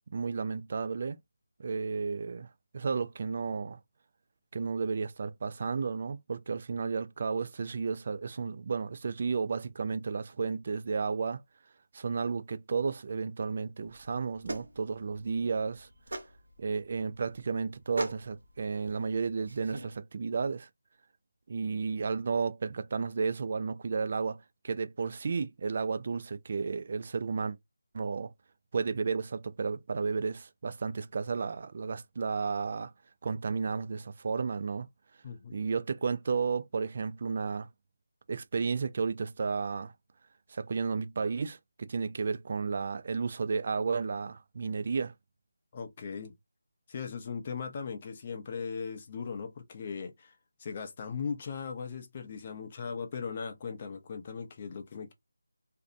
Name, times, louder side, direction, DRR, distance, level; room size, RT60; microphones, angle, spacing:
voice 1, 0.1-1.2 1.6-2.5 2.7-3.8 4.5-11.4 11.9-15.9 16.6-20.7 21.5-24.4 24.6-27.6 27.9-28.3 28.7-32.9 33.2-34.9 35.5-37.7 38.3-39.9 40.5-45.1, right 5 dB, 40° right, 0.3 m, -32 dB
sound 1, 13.9-20.0, right 2 dB, 75° right, 0.9 m, -42 dB
voice 2, 35.2-35.6 45.7-46.3 46.9-55.1, left 5 dB, 30° left, 0.6 m, -38 dB
2.6 x 2.1 x 2.5 m
figure-of-eight pair, 170°, 0 cm